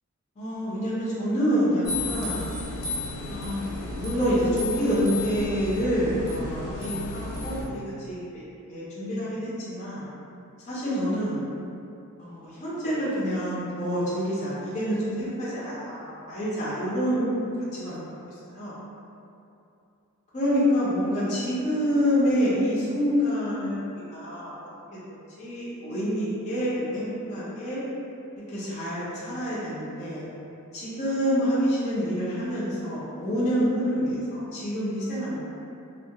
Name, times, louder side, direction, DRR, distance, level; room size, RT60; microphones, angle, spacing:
voice 1, 0.4-2.4 3.3-8.4 8.7-10.0 10.7-11.4 12.2-17.3 17.7-18.0 18.2-18.8 20.3-23.8 24.1-24.7 25.4-27.8 28.5-30.3 30.7-35.5, equal, 30° left, -10 dB, 0.5 m, -27 dB
sound 1, 1.9-7.6, left 2 dB, 85° left, 0.6 m, -33 dB
2.7 x 2.1 x 2.2 m, 2.7 s
head